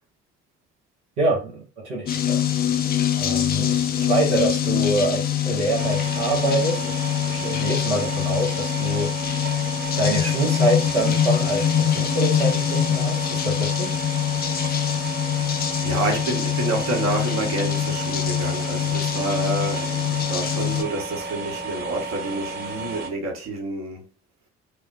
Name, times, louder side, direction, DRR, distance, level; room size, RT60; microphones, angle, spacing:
voice 1, 1.2-2.4 3.1-9.4 10.0-14.0, right 2 dB, 75° right, 0.9 m, -26 dB
sound 1, 2.1-20.8, left 10 dB, 30° left, 0.4 m, -24 dB
sound 2, 5.8-23.1, right 3 dB, 25° right, 1.1 m, -33 dB
voice 2, 14.7-15.2 15.8-24.0, right 2 dB, 50° right, 1.1 m, -29 dB
2.4 x 2.1 x 3.6 m
figure-of-eight pair, 50°, 35 cm